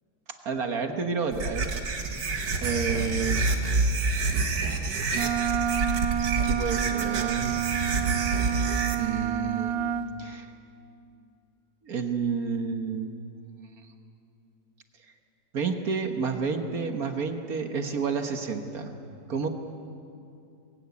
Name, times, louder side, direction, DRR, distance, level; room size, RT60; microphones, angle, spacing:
voice 1, 0.5-1.7 2.6-3.6 6.4-7.6 9.0-9.8 10.2-10.5 11.8-13.1 15.5-18.9 19.3-19.5, right 5 dB, 55° right, 5 dB, 1.7 m, -30 dB
sound 1, 1.3-9.0, right 3 dB, 75° right, 2.3 m, -27 dB
Wind instrument woodwind instrument, 5.1-10.1, right 10 dB, 90° right, 1.4 m, -28 dB
21.0 x 17.0 x 9.5 m, 2.5 s
omnidirectional pair, 1.9 m